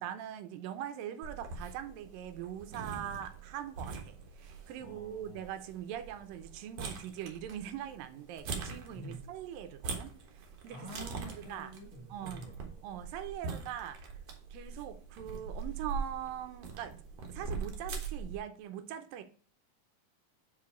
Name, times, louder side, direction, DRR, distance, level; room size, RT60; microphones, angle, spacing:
voice 1, 0.0-10.8 11.5-11.7 12.1-12.4 12.8-14.1 14.5-16.9 17.3-19.2, right 10 dB, 75° right, 9 dB, 2.3 m, -42 dB
sound 1, 1.2-18.4, right 4 dB, 60° right, 1.8 m, -43 dB
voice 2, 4.8-5.5 8.9-9.2 10.7-13.0, right 1 dB, 55° left, -3 dB, 0.9 m, -48 dB
5.8 x 4.9 x 4.9 m, 0.43 s
omnidirectional pair, 4.2 m